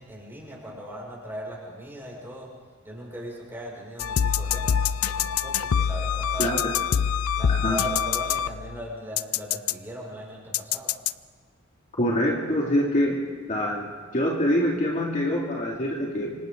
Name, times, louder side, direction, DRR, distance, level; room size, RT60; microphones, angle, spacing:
voice 1, 0.0-2.5 2.8-4.8 5.0-6.5 7.4-10.9, right 1 dB, 10° right, -4 dB, 6.3 m, -38 dB
sound 1, 4.0-8.8 9.2-9.7 10.5-11.1, left 8 dB, 85° left, 0.5 m, -25 dB
voice 2, 6.4-6.8 7.5-7.8 12.0-13.2 13.5-16.4, equal, 35° left, -3 dB, 2.6 m, -25 dB
27.0 x 25.0 x 3.9 m, 1.5 s
head